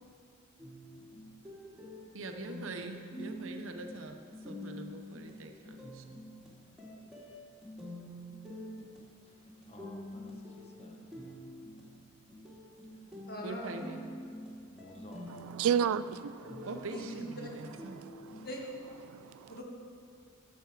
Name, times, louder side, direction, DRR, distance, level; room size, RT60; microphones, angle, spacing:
sound 1, 0.6-18.5, equal, ahead, 1.9 m, -47 dB
voice 1, 2.1-6.0 13.4-14.0 16.7-18.0, right 2 dB, 65° right, 6 dB, 0.7 m, -43 dB
voice 2, 9.2-11.4 12.9-13.1 14.7-15.7, left 1 dB, 30° left, 1 dB, 1.0 m, -55 dB
voice 3, 13.3-13.8 16.9-17.2 18.4-18.6 19.5-19.6, equal, 45° left, -1 dB, 1.6 m, -41 dB
voice 4, 15.6-16.7 18.0-18.4 19.1-19.5, right 8 dB, 80° right, 16 dB, 0.3 m, -32 dB
11.5 x 7.1 x 4.8 m, 2.3 s
head